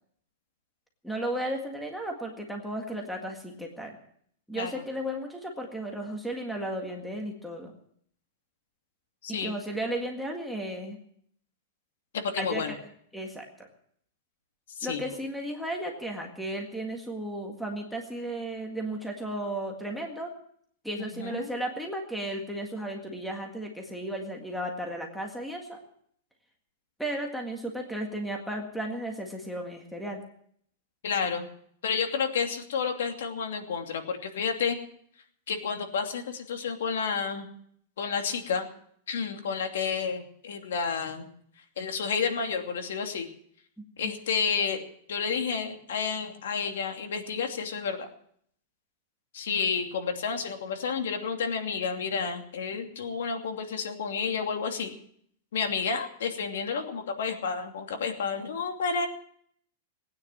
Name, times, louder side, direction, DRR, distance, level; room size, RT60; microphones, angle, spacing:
voice 1, 1.0-4.0 4.5-7.7 9.3-11.0 12.4-12.6 13.1-13.5 14.8-20.3 20.8-25.8 27.0-30.2 44.0-44.1, right 1 dB, ahead, 2 dB, 1.8 m, -34 dB
voice 2, 4.5-4.8 9.2-9.5 12.1-12.7 14.8-15.0 21.0-21.5 31.0-31.5 31.8-34.8 35.5-37.5 38.0-38.7 39.1-41.3 41.6-43.3 44.0-44.8 45.1-48.1 49.3-54.9 55.5-59.1, left 5 dB, 80° left, 5 dB, 2.7 m, -30 dB
19.5 x 9.5 x 7.6 m, 0.65 s
supercardioid pair, 175°, 0 cm